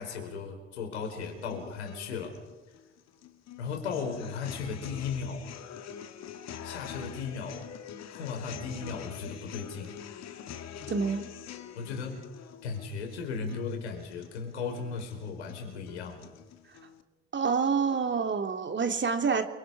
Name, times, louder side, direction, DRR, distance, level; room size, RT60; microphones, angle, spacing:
voice 1, 0.0-2.4 3.6-5.5 6.6-7.6 8.1-10.0 11.8-12.2 12.6-16.3, left 5 dB, 80° left, 3 dB, 4.8 m, -36 dB
sound 1, 1.0-17.0, left 9 dB, 50° left, 2.2 m, -45 dB
voice 2, 10.9-11.2 17.3-19.4, right 5 dB, 35° right, 6 dB, 2.9 m, -27 dB
29.5 x 24.5 x 4.8 m, 1.2 s
figure-of-eight pair, 50°, 33 cm